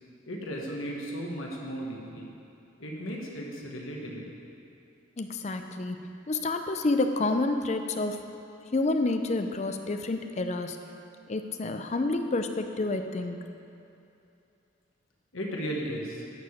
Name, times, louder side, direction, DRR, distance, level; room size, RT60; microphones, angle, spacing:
voice 1, 0.2-2.3 2.8-4.3 15.3-16.2, equal, 90° left, -1 dB, 1.4 m, -35 dB
voice 2, 5.2-6.0 6.3-8.2 8.7-10.8 11.3-13.4, left 2 dB, 35° left, 7 dB, 0.5 m, -29 dB
11.0 x 4.9 x 7.1 m, 2.8 s
head